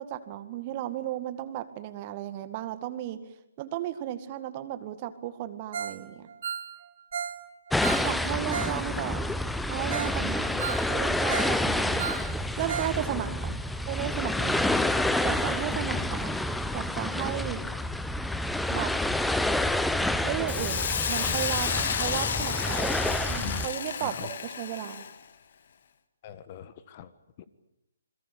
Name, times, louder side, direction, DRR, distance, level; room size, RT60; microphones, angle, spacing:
voice 1, 0.0-3.2 3.6-6.3 8.0-9.2 9.7-12.3 12.6-13.6 13.9-14.6 15.2-16.4 16.7-17.6 18.7-18.9 20.2-25.0, right 12 dB, 30° right, 11 dB, 2.0 m, -34 dB
Ringtone, 5.7-6.0 6.3-8.8 9.1-9.2 9.6-9.7 9.9-10.2 10.4-11.6 11.8-13.0 13.2-13.3 13.8-13.9, right 7 dB, 50° right, 2.9 m, -35 dB
sound 1, 7.7-23.7, left 1 dB, 5° left, 0.9 m, -28 dB
voice 2, 15.6-16.1 23.0-23.7 24.0-24.3 26.2-27.1 27.4-27.5, left 10 dB, 35° left, 14 dB, 1.5 m, -42 dB
Hiss, 20.5-25.2, left 7 dB, 50° left, 1.9 m, -31 dB
28.0 x 21.5 x 8.6 m, 0.82 s
figure-of-eight pair, 135°, 0 cm